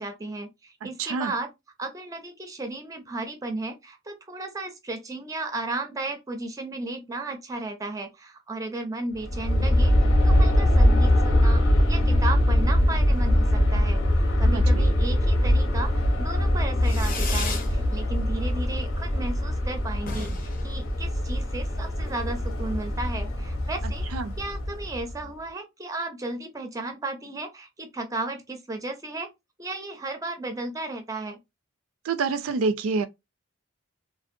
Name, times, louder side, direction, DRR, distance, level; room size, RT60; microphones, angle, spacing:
voice 1, 0.0-1.5 1.8-9.9 10.2-11.6 11.9-24.1 24.4-29.3 29.6-31.4, right 2 dB, 15° right, 0.4 m, -34 dB
voice 2, 1.0-1.3 14.4-14.9 24.1-24.3 32.0-33.1, right 4 dB, 85° right, 0.4 m, -27 dB
Aircraft, 9.1-25.2, left 1 dB, 90° left, 0.8 m, -22 dB
Fireworks, 16.8-17.7 18.1-18.6 18.9-19.0 19.3-19.4 19.6-19.7 20.0-21.6, left 4 dB, 40° left, 0.6 m, -36 dB
2.5 x 2.1 x 2.5 m
head